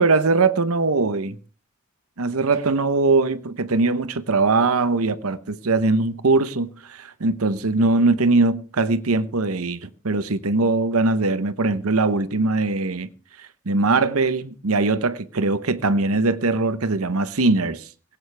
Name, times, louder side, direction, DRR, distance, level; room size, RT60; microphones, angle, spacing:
voice 1, 0.0-1.4 2.2-13.1 13.4-17.9, right 3 dB, 80° right, 1.0 m, -21 dB
18.0 x 16.0 x 3.4 m
head